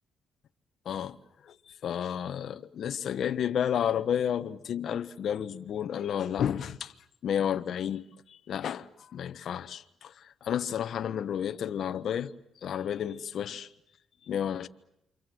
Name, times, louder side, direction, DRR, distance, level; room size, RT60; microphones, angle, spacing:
voice 1, 0.8-1.2 1.4-1.5 1.8-6.9 7.2-12.3 12.6-13.7 14.2-14.7, left 9 dB, 65° left, 1.2 m, -31 dB
28.5 x 26.0 x 7.9 m
cardioid pair, 90°, 0 cm